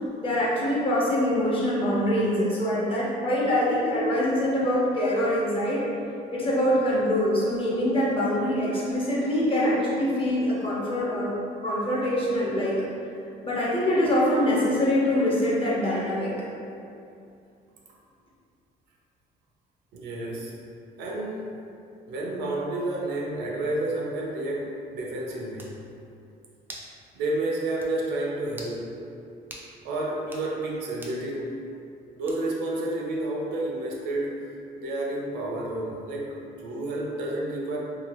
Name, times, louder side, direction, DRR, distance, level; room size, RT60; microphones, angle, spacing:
voice 1, 0.2-5.8 6.3-11.3 11.6-12.8 13.4-16.3, left 1 dB, 30° left, -6 dB, 0.8 m, -24 dB
voice 2, 19.9-20.5 21.0-21.5 22.1-25.7 27.1-28.8 29.8-31.5 32.2-34.3 34.8-37.8, right 2 dB, 85° right, -3 dB, 0.6 m, -30 dB
sound 1, 25.6-25.8 26.7-26.9 27.3-27.4 27.8-27.9 28.5-28.8 29.5-29.7 30.2-30.5 31.0-31.2 32.3-32.6, right 1 dB, 10° right, 0.4 m, -43 dB
2.8 x 2.4 x 2.9 m, 2.6 s
cardioid pair, 110°, 17 cm